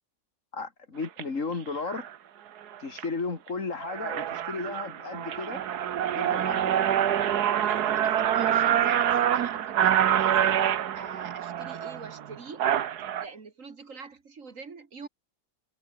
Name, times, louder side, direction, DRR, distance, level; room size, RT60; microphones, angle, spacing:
voice 1, 0.5-2.1 2.8-5.7 6.1-6.9, left 4 dB, 50° left, 2.7 m, -34 dB
sound 1, 1.0-1.2 1.9-2.1 2.6-3.1 3.5-3.6 3.8-13.2, right 10 dB, 80° right, 1.6 m, -26 dB
voice 2, 7.6-12.7 13.2-15.1, right 4 dB, 55° right, 2.2 m, -45 dB
omnidirectional pair, 1.7 m